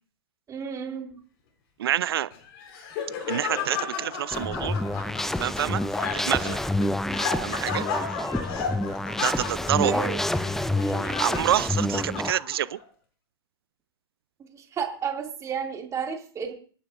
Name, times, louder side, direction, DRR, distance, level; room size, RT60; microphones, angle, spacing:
voice 1, 0.5-1.2 9.8-10.2 14.5-16.5, right 7 dB, 25° right, 2 dB, 2.5 m, -32 dB
voice 2, 1.8-2.3 3.3-4.8 5.4-5.8 6.2-6.6 7.4-7.8 9.2-9.9 10.9-12.8, right 11 dB, 70° right, 18 dB, 0.6 m, -27 dB
Laughter, 2.3-12.8, left 6 dB, 50° left, 4.2 m, -34 dB
sound 1, 4.3-12.3, left 1 dB, 5° left, 0.4 m, -28 dB
25.5 x 9.3 x 2.6 m, 0.42 s
hypercardioid pair, 105°, 13 cm